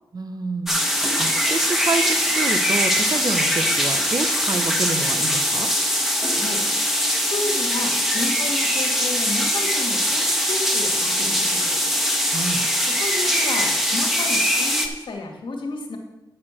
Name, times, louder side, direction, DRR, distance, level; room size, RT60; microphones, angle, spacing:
voice 1, 0.1-5.7 12.3-12.6, right 3 dB, 50° right, 8 dB, 0.9 m, -28 dB
sound 1, 0.7-14.9, equal, 5° right, 1.4 m, -22 dB
voice 2, 6.3-6.6 7.2-11.7 12.9-16.0, left 3 dB, 75° left, 1 dB, 1.9 m, -32 dB
10.0 x 4.4 x 7.5 m, 1.1 s
cardioid pair, 65°, 9 cm